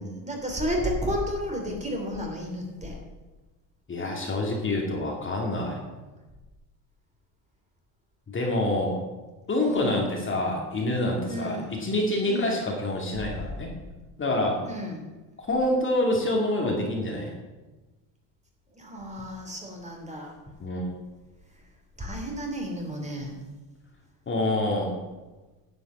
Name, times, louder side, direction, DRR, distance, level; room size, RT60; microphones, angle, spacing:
voice 1, 0.0-3.0 9.6-10.1 11.2-11.7 12.2-12.6 14.7-15.1 18.7-20.4 22.0-23.4, equal, 15° right, 1 dB, 2.9 m, -32 dB
voice 2, 3.9-5.8 8.3-9.0 9.5-13.7 14.2-14.6 15.5-17.3 20.6-20.9 24.3-25.0, left 1 dB, 25° left, 0 dB, 2.4 m, -26 dB
10.5 x 6.9 x 7.4 m, 1.2 s
supercardioid pair, 115°, 47 cm